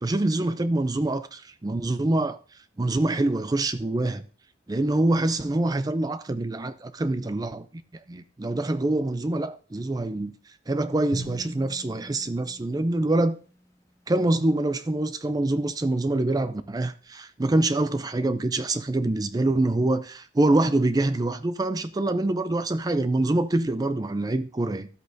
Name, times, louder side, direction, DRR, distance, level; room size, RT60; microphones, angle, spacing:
voice 1, 0.0-2.4 2.8-4.2 4.7-7.7 8.1-10.3 10.7-13.4 14.1-24.9, right 2 dB, 20° right, 0.4 m, -25 dB
Drum, 11.1-13.5, equal, 15° left, 1.0 m, -40 dB
13.0 x 8.2 x 2.7 m
head